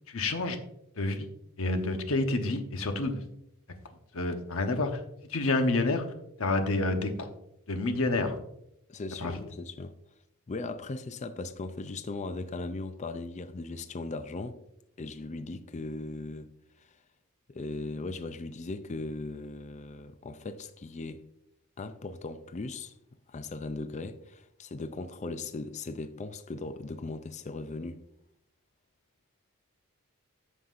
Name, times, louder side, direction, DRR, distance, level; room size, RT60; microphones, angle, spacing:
voice 1, 0.1-0.6 1.0-1.3 1.6-3.2 4.1-6.1 6.4-7.3 7.7-8.4 9.2-9.3, left 2 dB, 65° left, 1.0 m, -28 dB
voice 2, 8.9-9.9 10.5-14.6 15.0-16.5 16.8-17.0 17.5-21.2 21.8-22.9 23.3-28.0, left 3 dB, 30° left, 0.4 m, -38 dB
13.5 x 5.6 x 2.5 m
head